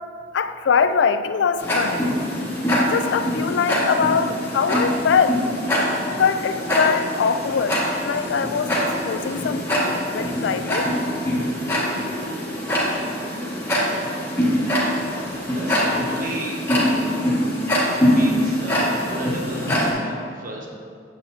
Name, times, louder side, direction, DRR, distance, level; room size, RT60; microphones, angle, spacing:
voice 1, 0.3-2.3 2.9-5.4 6.1-10.9, left 6 dB, 70° left, 11 dB, 0.4 m, -23 dB
Tick-tock, 1.6-19.9, equal, 15° left, 1.6 m, -23 dB
voice 2, 14.5-15.3 15.5-17.1 17.9-20.7, right 1 dB, 50° right, -1 dB, 1.1 m, -35 dB
8.4 x 7.7 x 2.7 m, 2.2 s
head